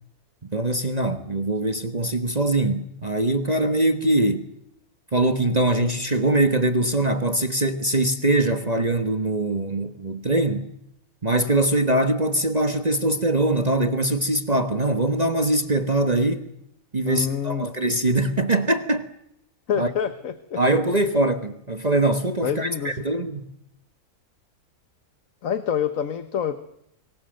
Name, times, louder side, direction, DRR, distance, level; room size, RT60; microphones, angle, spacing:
voice 1, 0.5-4.4 5.1-10.7 11.2-16.5 16.9-19.0 19.8-19.9 20.6-23.5, right 2 dB, 30° right, 1.4 m, -22 dB
voice 2, 17.0-17.7 19.7-20.6 22.4-23.0 25.4-26.6, left 8 dB, 60° left, 1.5 m, -27 dB
26.0 x 23.0 x 6.5 m
omnidirectional pair, 1.6 m